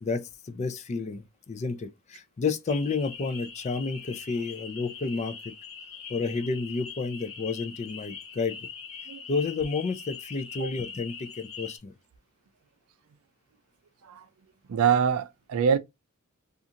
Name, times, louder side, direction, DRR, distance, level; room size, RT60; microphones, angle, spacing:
voice 1, 0.0-5.5 6.1-8.7 9.3-11.9, left 4 dB, 30° left, 0.4 m, -31 dB
sound 1, 2.7-11.8, left 5 dB, 85° left, 1.1 m, -42 dB
voice 2, 14.7-15.8, right 7 dB, 70° right, 0.4 m, -24 dB
2.7 x 2.5 x 2.4 m
head